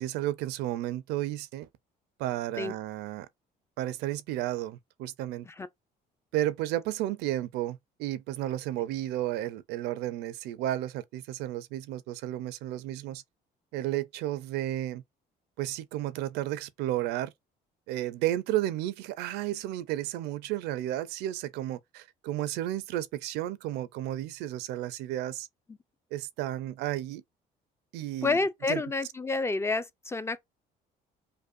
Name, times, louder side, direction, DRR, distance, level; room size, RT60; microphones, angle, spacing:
voice 1, 0.0-1.7 2.2-3.3 3.8-5.5 6.3-13.2 13.7-15.0 15.6-17.3 17.9-25.5 26.1-27.2 27.9-28.4 28.7-28.8, right 14 dB, 90° right, 0.5 m, -32 dB
voice 2, 28.2-30.4, left 3 dB, 15° left, 0.3 m, -29 dB
5.2 x 2.2 x 2.5 m
cardioid pair, 110°, 17 cm